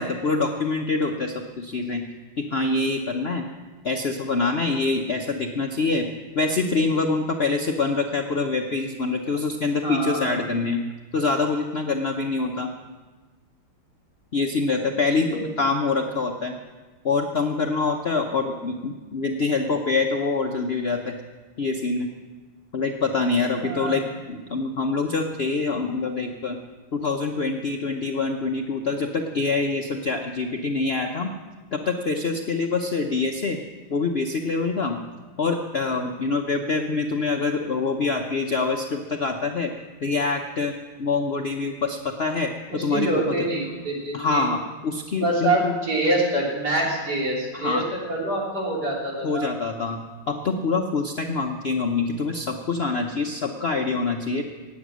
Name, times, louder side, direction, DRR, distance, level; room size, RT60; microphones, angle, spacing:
voice 1, 0.0-2.0 2.4-3.4 3.8-6.1 6.3-10.8 11.1-12.7 14.3-16.5 17.0-21.1 21.6-22.1 22.7-24.0 24.3-26.6 26.9-31.3 31.7-33.6 33.9-35.0 35.4-39.7 40.0-40.7 41.0-42.5 42.8-43.1 44.1-45.7 47.5-47.8 49.2-50.0 50.3-54.4, left 3 dB, 75° left, 3 dB, 0.5 m, -25 dB
voice 2, 9.8-10.3 15.3-15.4 23.6-24.0 42.7-44.4 45.2-47.8 48.1-49.5, right 2 dB, 50° right, -4 dB, 3.9 m, -25 dB
18.5 x 8.1 x 6.2 m, 1.3 s
omnidirectional pair, 2.2 m